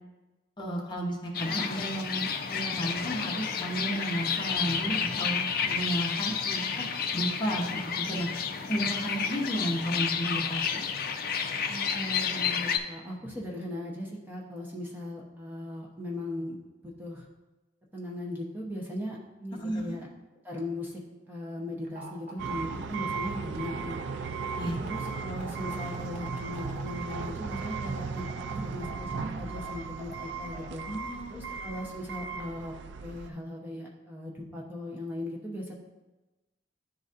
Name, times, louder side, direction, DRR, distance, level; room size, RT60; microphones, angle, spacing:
voice 1, 0.6-6.9 7.1-10.7 19.5-20.0 24.6-24.7 28.5-28.6 30.8-31.4, right 1 dB, 25° left, -2 dB, 0.9 m, -33 dB
sound 1, 1.3-12.8, left 6 dB, 55° left, 0.4 m, -31 dB
voice 2, 11.7-16.5 16.8-17.3 17.9-20.1 20.4-21.0 21.3-24.0 24.5-29.1 29.3-30.8 31.3-32.7 33.0-35.7, left 1 dB, 10° right, -3 dB, 0.8 m, -38 dB
sound 2, 21.8-30.7, right 3 dB, 45° right, 0.8 m, -44 dB
sound 3, 22.4-33.3, right 5 dB, 75° right, 0.4 m, -36 dB
10.5 x 4.0 x 2.5 m, 1.1 s
head